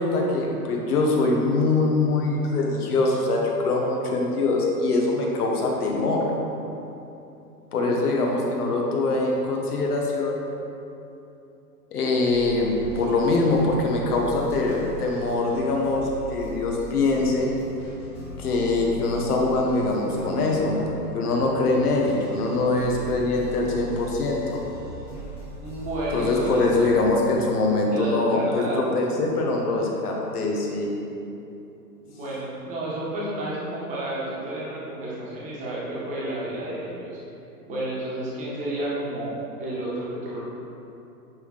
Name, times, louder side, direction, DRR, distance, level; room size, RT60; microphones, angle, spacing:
voice 1, 0.0-6.3 7.7-10.4 11.9-17.5 18.4-20.8 21.1-24.6 26.1-30.9, left 2 dB, 70° left, -1 dB, 1.5 m, -23 dB
voice 2, 7.8-8.3 25.6-27.0 27.9-29.0 32.0-37.2 37.7-40.4, right 1 dB, 15° right, -7 dB, 1.5 m, -31 dB
sound 1, 12.3-27.0, left 1 dB, 10° left, 1.5 m, -39 dB
9.7 x 3.9 x 4.1 m, 2.9 s
hypercardioid pair, 155°, 47 cm